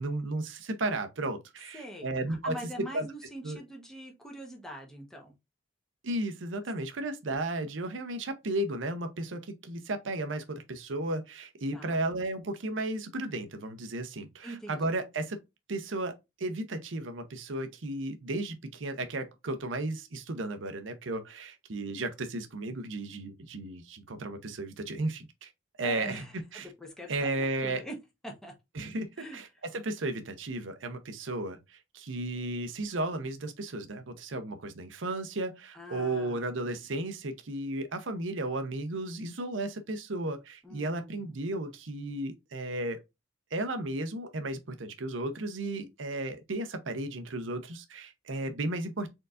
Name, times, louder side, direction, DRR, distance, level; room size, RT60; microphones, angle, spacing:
voice 1, 0.0-2.5 2.9-3.1 3.4-3.6 6.0-15.4 15.7-25.5 25.8-26.2 26.5-26.7 27.1-27.8 28.7-29.5 29.7-43.0 43.5-49.1, right 2 dB, 85° right, 0.7 m, -34 dB
voice 2, 1.7-5.3 11.7-12.0 14.4-14.8 25.8-28.0 28.2-28.5 29.2-29.4 35.7-36.7 40.6-41.3, right 1 dB, 5° left, 1.0 m, -44 dB
4.5 x 3.8 x 2.5 m
head